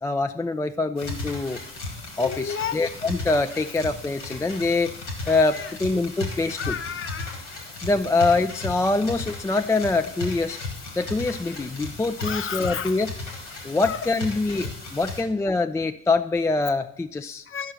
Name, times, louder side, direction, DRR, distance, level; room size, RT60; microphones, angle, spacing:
voice 1, 0.0-1.6 2.2-4.9 5.3-6.7 7.8-10.6 11.0-13.1 13.6-17.4, left 3 dB, 10° left, 8 dB, 0.3 m, -24 dB
sound 1, 1.0-15.2, left 3 dB, 80° left, 1.8 m, -36 dB
voice 2, 2.2-2.8 5.5-5.7 6.6-7.4 12.2-13.0 13.8-14.1 17.5-17.7, left 7 dB, 35° left, 10 dB, 0.8 m, -32 dB
11.5 x 5.5 x 5.9 m, 0.76 s
figure-of-eight pair, 45°, 34 cm